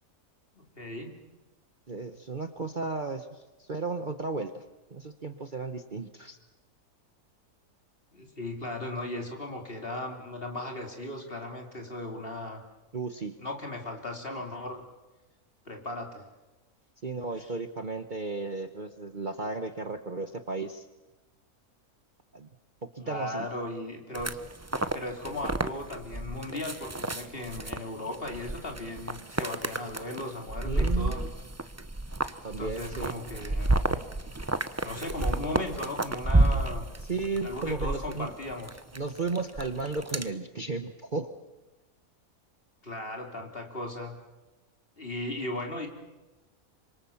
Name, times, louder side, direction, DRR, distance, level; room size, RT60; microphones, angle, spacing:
voice 1, 0.5-1.1 8.1-12.6 13.4-14.8 15.7-16.3 17.3-17.5 23.0-24.4 24.9-31.2 32.6-33.8 34.8-36.9 37.4-38.8 42.8-44.2 45.0-45.9, left 1 dB, 40° left, 3 dB, 3.6 m, -37 dB
voice 2, 1.9-4.6 4.9-6.4 12.9-13.4 17.0-20.9 22.3-22.5 22.9-23.5 30.6-31.1 32.4-33.2 37.0-38.3 38.9-41.3, right 3 dB, 35° right, 8 dB, 1.1 m, -34 dB
sound 1, 24.1-40.3, right 2 dB, 15° right, 0.7 m, -30 dB
27.0 x 25.5 x 7.2 m, 1.1 s
omnidirectional pair, 1.6 m